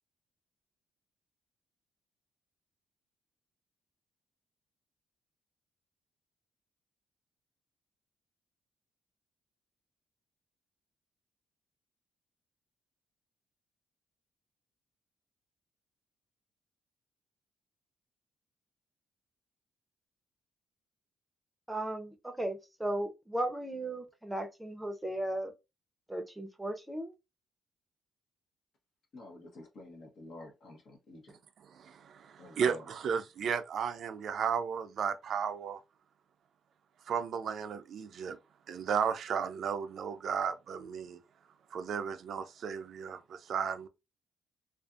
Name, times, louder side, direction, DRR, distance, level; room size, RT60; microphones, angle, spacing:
voice 1, 21.7-25.5 26.1-27.1, right 1 dB, 10° right, 0.6 m, -36 dB
voice 2, 29.1-31.4 32.4-32.9, left 2 dB, 60° left, 0.9 m, -50 dB
voice 3, 31.7-35.8 37.1-38.4 38.7-41.2 41.7-43.9, right 7 dB, 60° right, 0.4 m, -34 dB
2.5 x 2.4 x 2.4 m
cardioid pair, 90°, 0 cm